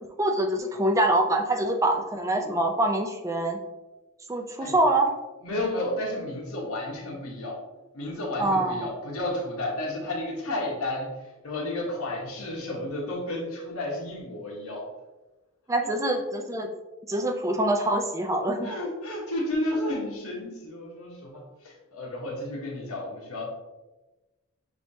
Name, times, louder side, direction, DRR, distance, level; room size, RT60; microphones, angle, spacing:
voice 1, 0.2-3.6 4.3-5.1 8.4-8.9 15.7-16.7 17.1-18.7, right 1 dB, 15° right, 4 dB, 0.4 m, -25 dB
voice 2, 5.4-7.6 7.9-11.1 11.4-14.9 18.6-23.4, left 1 dB, 75° left, -1 dB, 1.1 m, -32 dB
6.1 x 2.8 x 2.7 m, 1.1 s
head